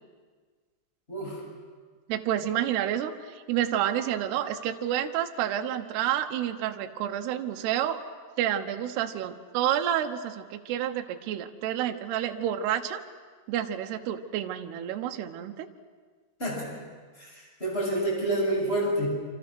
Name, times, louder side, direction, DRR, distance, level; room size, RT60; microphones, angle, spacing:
voice 1, 1.1-1.4 16.4-16.7 17.2-19.1, right 1 dB, 10° left, -1 dB, 7.1 m, -28 dB
voice 2, 2.1-8.0 8.4-13.0 13.5-15.7, right 11 dB, 70° right, 5 dB, 2.8 m, -29 dB
27.5 x 27.5 x 6.2 m, 1.5 s
omnidirectional pair, 5.6 m